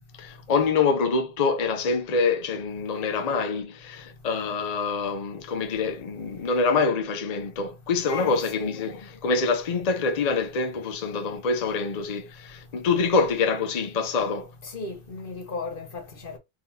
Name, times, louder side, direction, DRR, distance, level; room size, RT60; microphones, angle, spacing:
voice 1, 0.2-14.5, left 4 dB, 45° left, 0.7 m, -25 dB
voice 2, 8.0-8.7 14.6-16.4, left 3 dB, 60° left, 1.3 m, -35 dB
3.9 x 3.6 x 2.7 m
omnidirectional pair, 1.0 m